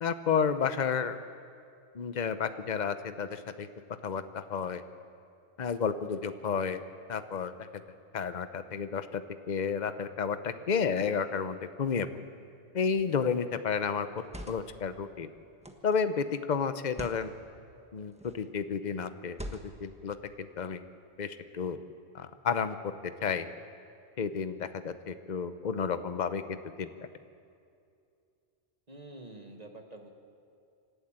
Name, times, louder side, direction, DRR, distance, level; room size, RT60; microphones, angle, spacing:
voice 1, 0.0-1.2 1.9-3.7 4.0-4.8 5.6-6.8 7.1-7.5 8.1-9.2 9.5-12.1 12.7-14.1 14.5-15.3 15.8-17.3 17.9-19.4 19.6-20.8 21.2-21.8 22.1-22.8 23.2-23.4 24.2-26.9, left 6 dB, 45° left, 11 dB, 0.9 m, -31 dB
sound 1, 12.9-13.2 14.1-14.8 15.6-16.0 16.8-17.2 18.1-18.5 19.3-19.9, equal, 5° right, 1.3 m, -44 dB
voice 2, 28.9-30.1, right 2 dB, 35° right, 4 dB, 1.9 m, -47 dB
26.5 x 12.0 x 8.9 m, 2.4 s
omnidirectional pair, 1.1 m